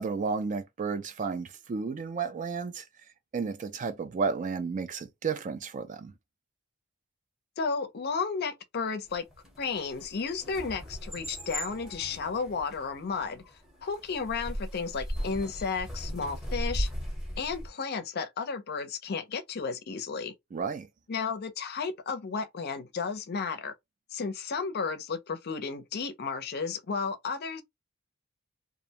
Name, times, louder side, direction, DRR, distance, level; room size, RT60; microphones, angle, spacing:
voice 1, 0.0-2.9 3.3-6.1 20.5-20.9, right 5 dB, 35° right, 0.3 m, -32 dB
voice 2, 7.6-9.2 9.6-13.4 13.8-16.9 17.4-20.3 21.1-23.7 24.1-27.6, left 5 dB, 50° left, 0.5 m, -33 dB
sound 1, 9.1-17.7, equal, ahead, 0.8 m, -37 dB
2.4 x 2.1 x 2.7 m
head